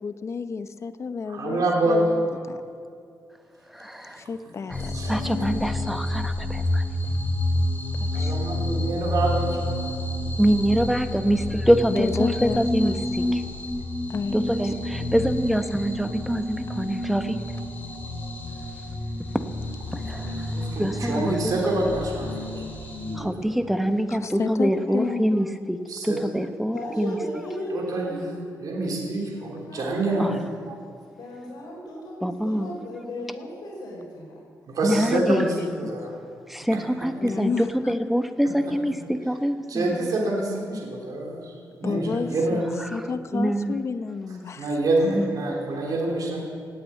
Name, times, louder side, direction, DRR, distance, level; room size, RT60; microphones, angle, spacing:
voice 1, 0.0-2.6 4.2-4.9 7.9-8.4 12.0-13.0 14.1-14.5 20.3-20.4 24.1-25.2 35.1-35.9 37.2-38.0 41.8-42.7 42.9-44.7 45.1-45.2, left 5 dB, 45° left, 11 dB, 0.7 m, -31 dB
voice 2, 1.3-2.3 4.0-4.1 4.8-5.2 8.1-10.0 20.0-22.6 23.0-23.6 25.9-26.2 27.7-28.2 28.6-30.4 30.7-30.8 34.7-35.5 35.8-36.1 36.7-36.8 38.6-38.7 39.7-41.5 41.8-42.6 44.6-46.4, right 2 dB, 65° right, -1 dB, 3.5 m, -27 dB
voice 3, 3.7-4.2 4.7-4.8 5.1-6.8 10.4-13.4 14.3-17.4 19.3-19.4 19.9-20.3 20.8-21.6 23.1-27.2 30.2-30.3 32.2-32.7 34.8-35.4 36.5-40.0 41.8-42.2 42.9-43.0 43.3-43.8 45.1-45.3, equal, ahead, 8 dB, 0.9 m, -25 dB
sound 1, 4.7-23.2, left 1 dB, 25° left, 3.3 m, -29 dB
voice 4, 26.7-28.2 28.8-30.4 31.2-34.4, left 1 dB, 70° left, -3 dB, 4.4 m, -36 dB
18.5 x 8.7 x 8.9 m, 2.3 s
cardioid pair, 125°, 7 cm